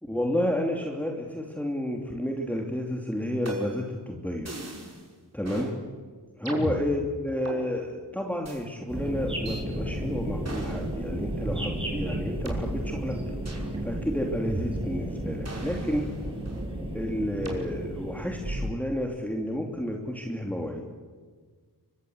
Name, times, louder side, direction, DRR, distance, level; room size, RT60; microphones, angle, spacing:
voice 1, 0.0-4.5 5.3-5.7 6.4-13.2 13.5-16.0 16.9-20.8, left 1 dB, 5° left, 1 dB, 2.9 m, -31 dB
sound 1, 3.5-3.9 4.5-5.0 5.4-5.7 6.5-7.6 8.4-8.6 9.5-9.6 10.4-10.9 11.5-11.6 12.5-12.6 13.5-13.7 14.5-15.0 15.5-16.7 17.5-17.6 18.4-18.8, right 2 dB, 40° right, 6.0 m, -36 dB
sound 2, 8.9-18.7, right 1 dB, 15° right, 6.9 m, -33 dB
24.5 x 24.0 x 8.1 m, 1.5 s
wide cardioid pair, 80°, 40 cm